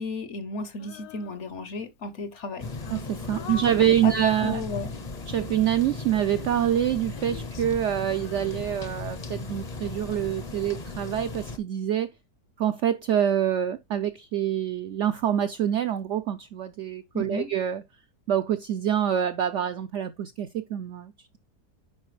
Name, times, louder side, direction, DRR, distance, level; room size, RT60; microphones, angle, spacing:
voice 1, 0.0-2.7 3.3-3.6 4.0-4.1 4.4-4.9 17.1-17.5, left 3 dB, 60° left, 0.9 m, -34 dB
Female singing, 0.8-1.9 2.4-5.7 6.3-9.5, left 8 dB, 75° left, 1.3 m, -45 dB
sound 1, 2.6-11.6, left 3 dB, 40° left, 0.6 m, -37 dB
voice 2, 2.9-4.6 5.3-12.1 12.6-17.8 18.3-21.4, right 10 dB, 75° right, 0.6 m, -26 dB
9.9 x 4.2 x 3.1 m
omnidirectional pair, 1.7 m